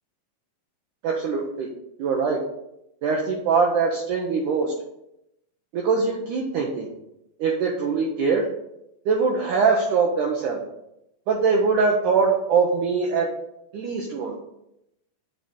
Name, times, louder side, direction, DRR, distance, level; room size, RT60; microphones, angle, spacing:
voice 1, 1.0-1.7 2.0-2.4 3.0-4.7 5.7-6.9 7.4-8.5 9.1-10.6 11.3-13.3 13.7-14.4, right 5 dB, 70° right, -1 dB, 2.2 m, -22 dB
6.2 x 5.0 x 6.8 m, 0.83 s
omnidirectional pair, 4.1 m